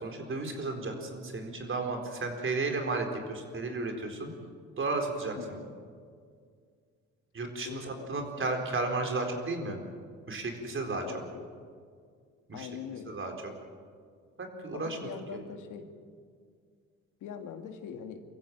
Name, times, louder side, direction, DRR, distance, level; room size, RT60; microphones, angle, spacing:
voice 1, 0.0-4.3 4.8-5.3 7.3-9.8 10.3-11.0 12.5-12.7 13.1-13.5 14.4-15.0 15.3-15.4, right 3 dB, 40° right, 4 dB, 4.3 m, -33 dB
voice 2, 5.4-5.7 7.6-8.5 10.9-11.5 12.5-13.2 14.7-15.9 17.2-18.2, left 7 dB, 85° left, 6 dB, 2.0 m, -43 dB
24.5 x 15.0 x 7.5 m, 2.1 s
cardioid pair, 90°, 30 cm